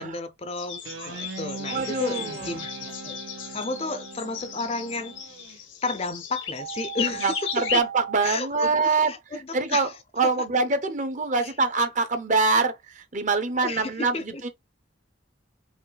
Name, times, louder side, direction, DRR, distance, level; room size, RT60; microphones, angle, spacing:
voice 1, 0.0-3.2 3.5-7.6 8.2-9.9 11.4-11.5 13.6-14.4, left 3 dB, 30° left, 0.5 m, -33 dB
sound 1, 0.6-7.8, left 8 dB, 80° left, 1.1 m, -36 dB
Guitar, 0.8-5.6, right 4 dB, 85° right, 1.2 m, -40 dB
voice 2, 1.7-2.5 7.2-9.1 9.5-9.9 10.2-14.2 14.4-14.5, right 4 dB, 40° right, 0.8 m, -24 dB
sound 2, 6.6-8.2, right 9 dB, 65° right, 0.5 m, -37 dB
5.0 x 2.6 x 3.9 m
head